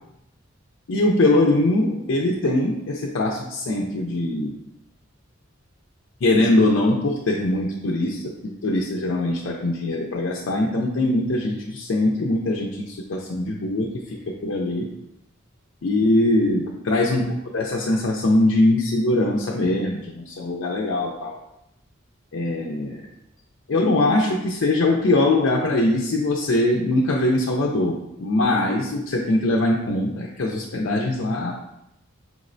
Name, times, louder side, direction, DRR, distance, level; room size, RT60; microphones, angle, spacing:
voice 1, 0.9-4.5 6.2-14.9 15.8-21.3 22.3-23.0 23.7-31.5, left 2 dB, 70° left, -1 dB, 0.5 m, -22 dB
5.0 x 3.1 x 2.6 m, 0.86 s
head